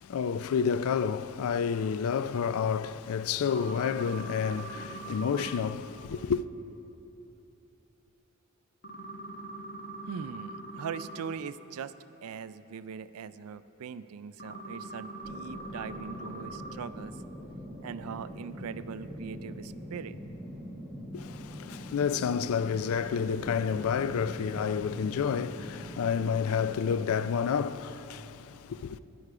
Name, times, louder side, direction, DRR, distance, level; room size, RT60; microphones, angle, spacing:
voice 1, 0.0-6.4 21.1-29.0, left 6 dB, 75° left, 0.3 m, -30 dB
sound 1, 3.4-5.6 8.8-11.2 14.4-16.7, right 2 dB, 45° left, 1.3 m, -42 dB
voice 2, 10.1-11.9 12.2-17.2 17.8-20.2, right 6 dB, 85° right, 0.4 m, -41 dB
sound 2, 15.2-27.1, equal, 5° right, 1.1 m, -43 dB
11.5 x 11.0 x 4.8 m
head